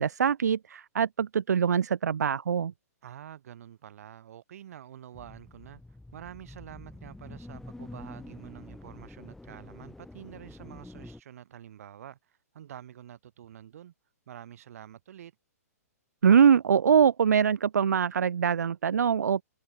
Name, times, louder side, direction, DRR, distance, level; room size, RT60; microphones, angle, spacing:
voice 1, 0.0-2.7 16.2-19.4, right 7 dB, 80° right, 0.6 m, -23 dB
voice 2, 3.0-5.8 6.1-13.9 14.3-15.3, right 10 dB, 60° right, 1.8 m, -47 dB
sound 1, 5.1-11.2, left 2 dB, 5° left, 1.5 m, -46 dB
hypercardioid pair, 135°, 9 cm